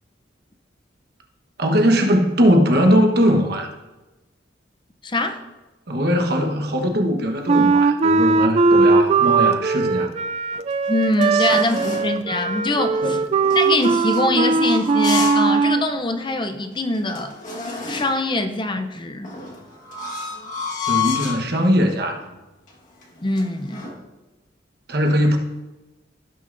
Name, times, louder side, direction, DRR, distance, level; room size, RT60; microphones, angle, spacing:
voice 1, 1.6-3.7 5.9-10.1 11.3-11.5 13.0-13.2 20.9-22.2 24.9-25.4, equal, 60° right, 4 dB, 1.2 m, -20 dB
voice 2, 5.0-5.4 10.9-13.2 13.5-17.3 17.9-19.3 23.2-23.8, left 2 dB, 25° left, 6 dB, 0.6 m, -23 dB
Wind instrument woodwind instrument, 7.5-15.9, right 4 dB, 35° right, 0.3 m, -19 dB
sound 1, 10.5-12.2 13.4-15.5 15.9-16.0 16.6-16.7 16.9-18.3 19.2-21.5 22.1-22.4 22.7-24.0, left 6 dB, 45° left, 1.6 m, -30 dB
17.0 x 6.6 x 2.6 m, 1.1 s
head